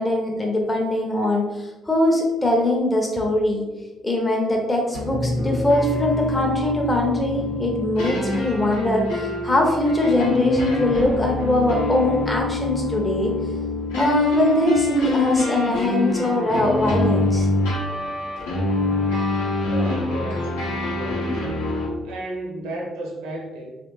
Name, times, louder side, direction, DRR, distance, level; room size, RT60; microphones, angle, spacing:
voice 1, 0.0-3.7 4.0-13.3 13.9-17.5, left 1 dB, 15° left, 0 dB, 0.6 m, -22 dB
sound 1, 4.9-21.9, left 2 dB, 75° left, 0.8 m, -25 dB
Bass guitar, 5.1-11.4, equal, 40° right, 0.4 m, -33 dB
voice 2, 19.6-21.4 22.0-23.7, right 1 dB, 70° right, -2 dB, 0.7 m, -33 dB
3.1 x 2.5 x 3.0 m, 1.1 s
figure-of-eight pair, 45°, 0 cm